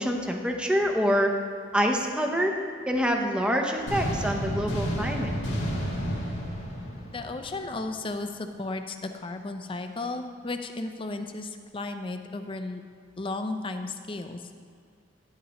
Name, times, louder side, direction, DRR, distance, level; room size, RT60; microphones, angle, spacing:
voice 1, 0.0-1.4 1.7-2.5 2.9-5.3, equal, 5° right, 2 dB, 0.7 m, -26 dB
sound 1, 3.9-7.8, equal, 85° left, 1.9 m, -31 dB
voice 2, 7.1-12.8 13.2-14.5, left 2 dB, 30° left, 7 dB, 0.5 m, -34 dB
10.5 x 9.3 x 3.0 m, 2.2 s
head